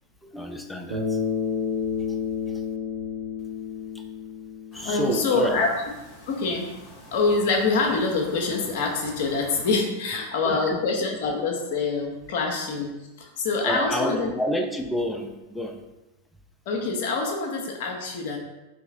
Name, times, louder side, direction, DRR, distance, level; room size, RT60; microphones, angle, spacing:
voice 1, 0.2-1.2 2.1-2.2 2.5-2.6 3.9-4.1 4.7-5.6 9.6-9.7 10.1-10.8 13.6-15.8, equal, 5° left, 3 dB, 0.4 m, -29 dB
Bass guitar, 0.9-5.3, left 6 dB, 65° right, 0.8 m, -30 dB
sound 1, 4.7-9.7, equal, 25° left, 1.2 m, -46 dB
voice 2, 4.8-5.7 6.3-6.7 7.1-12.9 13.2-14.3 16.7-18.4, left 4 dB, 50° left, 2 dB, 0.7 m, -25 dB
4.7 x 2.9 x 2.6 m, 1.0 s
figure-of-eight pair, 90°, 0 cm